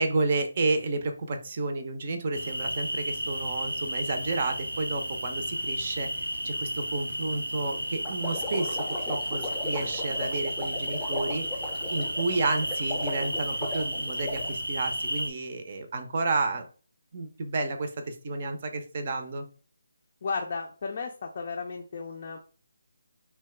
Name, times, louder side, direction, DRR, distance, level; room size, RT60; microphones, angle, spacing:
voice 1, 0.0-11.4 11.9-16.7 17.1-19.5, right 3 dB, 40° right, 6 dB, 0.6 m, -31 dB
sound 1, 2.3-15.3, equal, 90° right, 0.7 m, -33 dB
sound 2, 8.0-14.5, left 2 dB, 10° left, 0.7 m, -37 dB
voice 2, 20.2-22.4, left 4 dB, 45° left, 2 dB, 0.4 m, -34 dB
2.8 x 2.2 x 3.3 m, 0.39 s
figure-of-eight pair, 155°, 0 cm